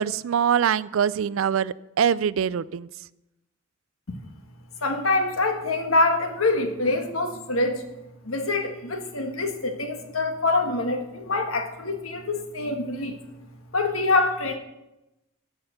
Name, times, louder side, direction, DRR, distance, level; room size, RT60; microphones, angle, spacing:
voice 1, 0.0-2.9, right 8 dB, 75° right, 19 dB, 0.4 m, -23 dB
voice 2, 4.8-7.9 8.2-13.1 13.7-14.6, left 2 dB, 85° left, 5 dB, 1.5 m, -25 dB
15.0 x 5.7 x 6.7 m, 0.96 s
head